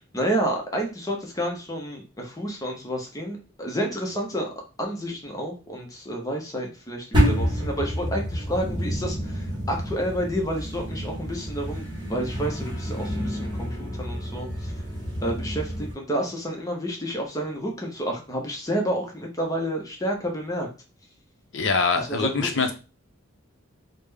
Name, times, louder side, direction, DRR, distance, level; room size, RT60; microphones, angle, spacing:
voice 1, 0.1-4.5 4.8-14.7 15.2-20.7 22.0-22.5, equal, 15° left, 1 dB, 0.7 m, -30 dB
sound 1, 7.1-15.9, equal, 25° right, 1.1 m, -28 dB
voice 2, 21.5-22.7, left 4 dB, 60° left, 5 dB, 0.6 m, -23 dB
3.6 x 2.1 x 3.2 m, 0.32 s
head